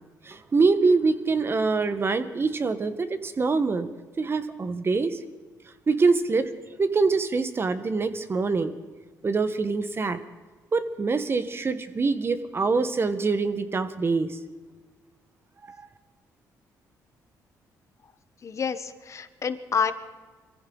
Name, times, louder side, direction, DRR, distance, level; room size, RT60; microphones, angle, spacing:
voice 1, 0.2-3.9 4.2-5.2 5.9-6.5 6.8-8.7 9.2-10.2 10.7-14.4 15.7-15.8, right 4 dB, 35° right, 11 dB, 1.2 m, -24 dB
voice 2, 18.4-19.9, left 6 dB, 45° left, 11 dB, 1.1 m, -28 dB
22.5 x 15.0 x 3.9 m, 1.4 s
cardioid pair, 85°, 7 cm